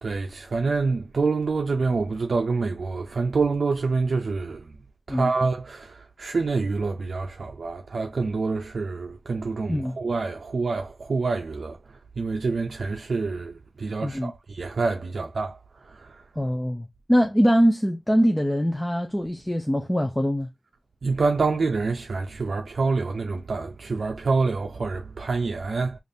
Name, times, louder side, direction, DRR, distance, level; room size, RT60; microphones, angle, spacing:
voice 1, 0.0-4.7 5.1-11.8 12.2-15.6 15.8-16.2 21.0-26.0, right 4 dB, 70° right, 0.5 m, -27 dB
voice 2, 14.0-14.3 16.4-20.5, equal, 5° left, 0.5 m, -23 dB
5.1 x 2.5 x 2.6 m
wide cardioid pair, 105°, 0 cm